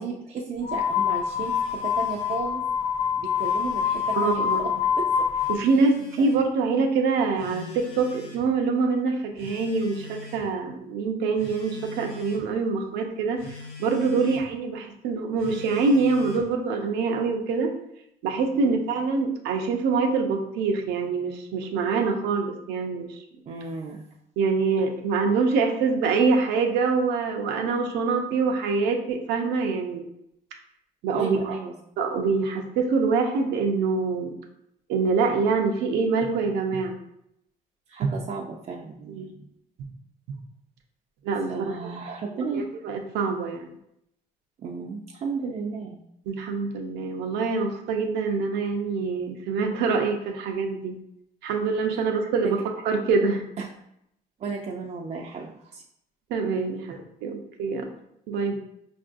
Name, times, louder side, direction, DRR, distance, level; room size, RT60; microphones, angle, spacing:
voice 1, 0.0-2.6 3.2-5.3 6.2-6.3 14.1-14.4 18.5-18.9 23.5-24.1 31.1-31.7 37.9-39.5 41.5-42.7 44.6-46.0 52.4-52.5 53.6-53.7 54.4-55.8, right 4 dB, 40° right, -1 dB, 0.4 m, -34 dB
sound 1, 0.6-5.6, left 7 dB, 40° left, 0.4 m, -25 dB
Telephone, 1.4-2.5 3.2-4.4 5.4-6.4 7.4-8.5 9.4-10.5 11.4-12.5 13.4-14.5 15.4-16.5, left 1 dB, 70° left, 0.9 m, -43 dB
voice 2, 4.1-4.8 5.5-13.4 13.8-17.7 18.2-23.2 24.4-30.0 31.0-31.6 32.0-34.4 34.9-37.0 38.0-38.1 39.1-39.3 41.2-41.7 42.5-43.7 46.3-50.9 51.4-52.6 52.8-53.4 56.3-57.9 58.3-58.6, right 4 dB, 85° right, 4 dB, 0.6 m, -25 dB
5.1 x 2.5 x 2.5 m, 0.79 s
cardioid pair, 110°, 17 cm